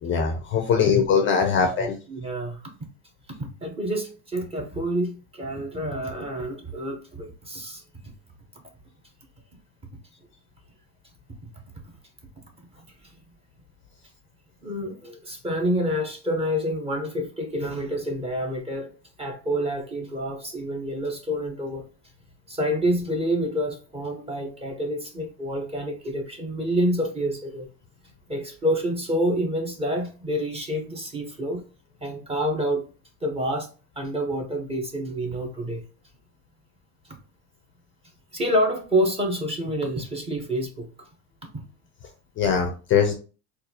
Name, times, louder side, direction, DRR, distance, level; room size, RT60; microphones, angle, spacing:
voice 1, 0.0-1.9 42.4-43.1, left 6 dB, 30° left, 5 dB, 0.4 m, -21 dB
voice 2, 0.7-1.1 1.6-2.7 3.6-7.8 11.4-11.5 11.8-11.9 14.6-18.9 19.2-21.9 22.5-27.7 28.3-31.6 32.0-32.8 33.2-33.7 34.0-35.8 38.3-40.9, equal, 15° right, 3 dB, 0.6 m, -28 dB
4.0 x 2.4 x 2.7 m, 0.35 s
cardioid pair, 140°, 41 cm